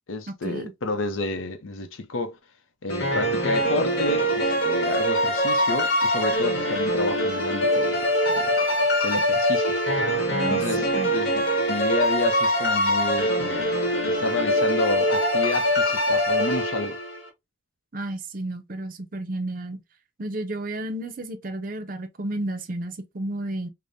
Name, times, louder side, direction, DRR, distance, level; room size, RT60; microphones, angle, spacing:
voice 1, 0.1-2.4 2.8-8.6 9.0-9.8 10.4-13.8 14.0-17.0, left 2 dB, 80° left, 0.6 m, -30 dB
sound 1, 2.9-17.2, equal, 55° left, 1.3 m, -23 dB
voice 2, 10.3-10.6 10.9-11.1 17.9-19.8 20.2-23.7, right 1 dB, 45° right, 0.5 m, -32 dB
4.9 x 2.1 x 2.6 m
head